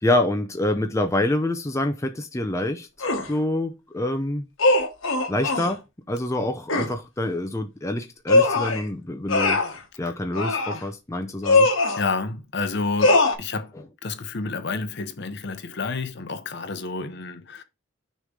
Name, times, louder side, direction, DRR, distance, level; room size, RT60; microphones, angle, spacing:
voice 1, 0.0-2.9 3.3-4.5 5.3-5.8 6.1-9.6 10.0-11.7 13.7-13.8, left 1 dB, 15° left, 0.5 m, -26 dB
sound 1, 3.0-3.3 4.6-5.7 6.7-6.9 8.3-8.8 9.3-9.8 10.3-10.8 11.4-12.0 13.0-13.3, left 2 dB, 70° left, 1.4 m, -20 dB
voice 2, 12.0-13.7 14.0-17.6, left 3 dB, 55° left, 0.8 m, -30 dB
6.5 x 3.2 x 5.2 m
head